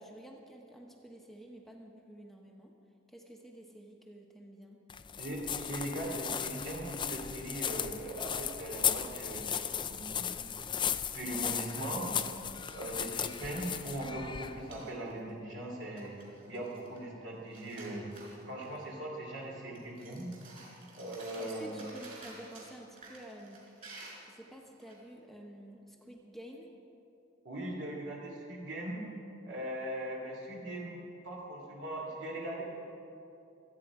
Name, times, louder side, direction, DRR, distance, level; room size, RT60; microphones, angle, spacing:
voice 1, 0.0-2.7 3.1-4.8 21.4-23.6 23.9-26.7, right 1 dB, ahead, 0 dB, 1.1 m, -50 dB
sound 1, 4.9-14.8, left 8 dB, 25° left, 0.4 m, -36 dB
voice 2, 5.2-9.6 9.9-10.4 10.7-12.1 12.7-16.1 16.5-18.0 18.5-20.3 20.9-21.8 27.4-29.0 29.4-31.0 31.2-32.6, right 1 dB, 65° right, -3 dB, 2.8 m, -40 dB
sound 2, 8.2-9.8 10.2-10.3 10.6-11.1 12.2-12.8 13.2-15.3 15.6-15.7 16.0-17.2 17.5-18.9 19.3-19.5 19.7-24.9, right 3 dB, 45° right, 4.4 m, -53 dB
25.5 x 9.2 x 4.9 m, 2.7 s
head